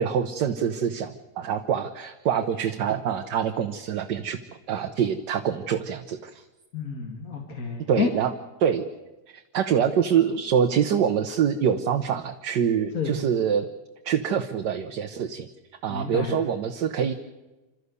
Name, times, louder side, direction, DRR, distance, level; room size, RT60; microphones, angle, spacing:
voice 1, 0.0-4.4 4.7-6.4 7.9-8.3 8.6-8.9 9.3-13.7 14.0-15.5 15.8-17.1, right 8 dB, 80° right, 6 dB, 1.6 m, -25 dB
voice 2, 6.7-8.1 12.9-13.1 15.9-16.4, left 5 dB, 55° left, 2 dB, 2.4 m, -29 dB
27.0 x 13.5 x 8.2 m, 1.1 s
omnidirectional pair, 1.8 m